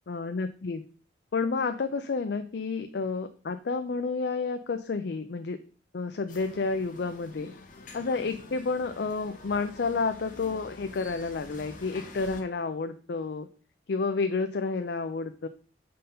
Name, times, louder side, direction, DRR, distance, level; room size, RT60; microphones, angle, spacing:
voice 1, 0.1-0.8 1.3-5.6 5.9-7.5 7.9-13.5 13.9-15.5, left 4 dB, 60° left, 8 dB, 0.4 m, -30 dB
sound 1, 6.3-12.4, left 2 dB, 45° left, 0.9 m, -47 dB
5.6 x 3.9 x 5.5 m, 0.40 s
head